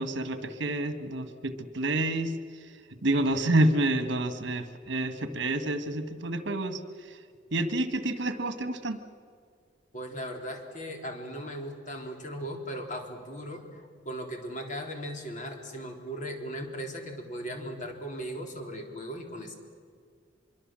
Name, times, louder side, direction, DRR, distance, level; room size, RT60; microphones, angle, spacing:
voice 1, 0.0-2.3 3.0-6.8 7.1-7.2 7.5-9.0, right 1 dB, 65° right, 10 dB, 1.6 m, -28 dB
voice 2, 9.9-19.6, equal, 40° left, 3 dB, 3.7 m, -38 dB
24.5 x 23.5 x 7.6 m, 2.1 s
head